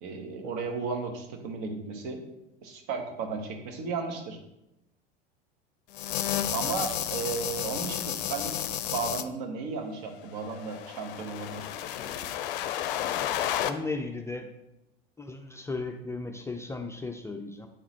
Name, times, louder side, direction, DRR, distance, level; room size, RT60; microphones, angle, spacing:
voice 1, 0.0-2.2 2.6-4.4 6.5-8.5 8.9-11.9, right 4 dB, 55° right, 4 dB, 1.2 m, -34 dB
sound 1, 5.9-9.2 10.4-13.7, left 11 dB, 60° left, 0.5 m, -32 dB
voice 2, 13.6-14.5 15.2-17.7, left 3 dB, 10° left, 3 dB, 0.4 m, -35 dB
8.3 x 3.9 x 3.0 m, 0.90 s
figure-of-eight pair, 75°, 30 cm